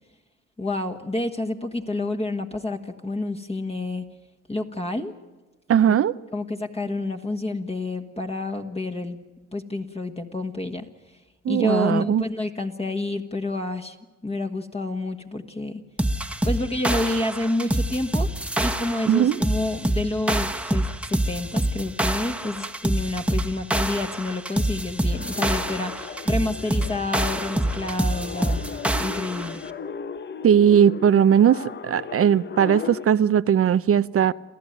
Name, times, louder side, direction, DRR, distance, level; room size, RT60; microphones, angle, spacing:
voice 1, 0.6-4.1 4.5-5.1 5.9-6.0 6.3-9.2 9.5-10.9 11.5-14.0 14.2-15.8 16.4-28.6 29.0-29.6, left 2 dB, 20° left, 4 dB, 1.6 m, -29 dB
voice 2, 5.7-6.1 11.5-12.2 19.1-19.4 30.4-34.3, right 9 dB, 50° right, 15 dB, 0.6 m, -19 dB
sound 1, 16.0-29.6, right 1 dB, 5° right, 1.3 m, -26 dB
sound 2, 25.1-33.1, left 6 dB, 35° left, 0.9 m, -36 dB
28.0 x 14.0 x 9.2 m, 1.2 s
cardioid pair, 90°, 30 cm